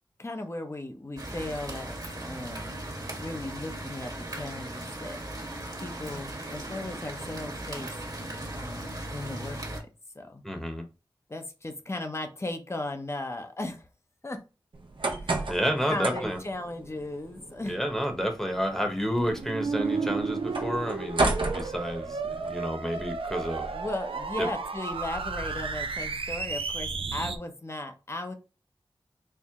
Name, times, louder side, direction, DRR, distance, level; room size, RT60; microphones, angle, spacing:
voice 1, 0.2-2.8 3.2-5.2 5.8-7.9 8.5-9.8 10.1-10.4 11.3-13.9 14.2-14.4 15.2-15.5 15.9-17.8 23.7-28.3, left 2 dB, 30° left, 6 dB, 0.7 m, -37 dB
sound 1, 1.2-9.8, right 1 dB, 45° right, 1.3 m, -38 dB
voice 2, 10.4-10.8 15.5-16.4 17.6-23.7 24.4-24.5, equal, 5° left, 4 dB, 1.0 m, -30 dB
sound 2, 14.7-22.5, right 2 dB, 70° right, 0.8 m, -34 dB
sound 3, 19.2-27.4, right 4 dB, 85° right, 0.4 m, -33 dB
4.5 x 2.1 x 3.6 m, 0.31 s
wide cardioid pair, 55°, 9 cm